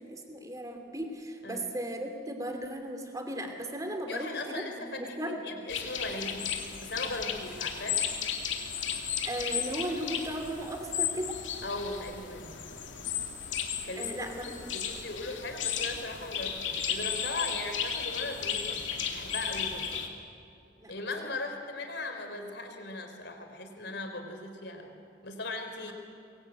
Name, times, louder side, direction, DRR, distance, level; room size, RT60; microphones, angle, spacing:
voice 1, 0.0-5.6 9.2-11.4 14.0-14.8 20.8-20.9, right 1 dB, 20° right, 4 dB, 2.8 m, -36 dB
voice 2, 4.1-6.5 6.8-8.0 11.6-12.5 13.8-14.1 14.6-19.9 20.9-25.0 25.2-25.9, left 2 dB, 60° left, 5 dB, 3.7 m, -38 dB
sound 1, 5.7-20.1, left 7 dB, 90° left, 2.4 m, -34 dB
24.0 x 22.5 x 9.0 m, 2.5 s
head